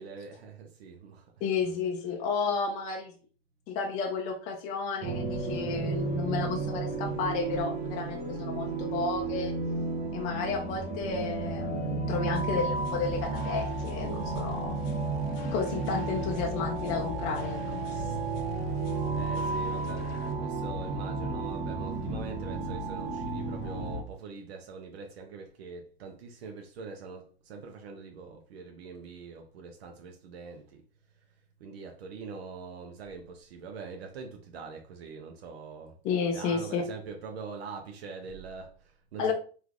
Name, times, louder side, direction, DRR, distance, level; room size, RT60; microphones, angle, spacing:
voice 1, 0.0-1.7 2.3-2.4 19.1-20.1 20.4-30.8 31.6-36.0 36.2-39.3, right 5 dB, 85° right, 0.6 m, -44 dB
voice 2, 1.4-3.1 3.7-9.5 10.1-14.8 15.5-18.2 36.0-36.8 39.2-39.3, left 5 dB, 25° left, 0.3 m, -32 dB
sound 1, 5.0-24.0, right 3 dB, 25° right, 0.6 m, -32 dB
sound 2, 12.3-20.3, left 4 dB, 80° left, 0.6 m, -49 dB
3.1 x 2.4 x 2.4 m
hypercardioid pair, 130°, 30 cm